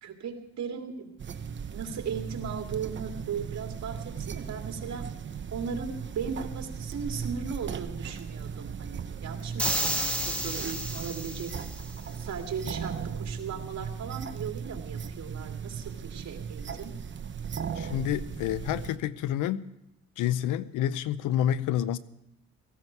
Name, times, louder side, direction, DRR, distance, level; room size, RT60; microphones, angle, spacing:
voice 1, 0.0-1.1 1.7-5.1 5.5-11.5 12.1-16.9, right 6 dB, 65° right, 3 dB, 2.5 m, -37 dB
sound 1, 1.2-19.0, right 6 dB, 40° right, 1.0 m, -37 dB
sound 2, 9.6-11.9, right 1 dB, 5° left, 2.4 m, -31 dB
voice 2, 17.8-19.7 20.2-22.0, left 11 dB, 90° left, 16 dB, 0.7 m, -28 dB
17.0 x 15.0 x 4.6 m, 0.84 s
cardioid pair, 90°, 30 cm